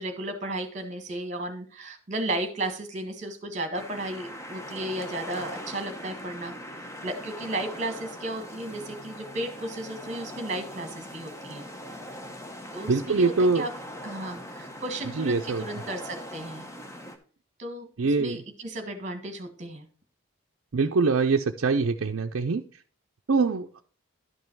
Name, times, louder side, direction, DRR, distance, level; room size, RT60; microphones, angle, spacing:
voice 1, 0.0-11.6 12.7-13.7 14.0-16.7 17.6-19.9, right 1 dB, 35° right, 7 dB, 1.6 m, -34 dB
sound 1, 3.7-17.2, equal, 15° left, 0.9 m, -41 dB
voice 2, 12.9-13.6 15.2-15.6 18.0-18.4 20.7-22.6 23.3-23.8, right 4 dB, 65° right, 2 dB, 0.5 m, -24 dB
11.5 x 5.4 x 4.5 m, 0.41 s
head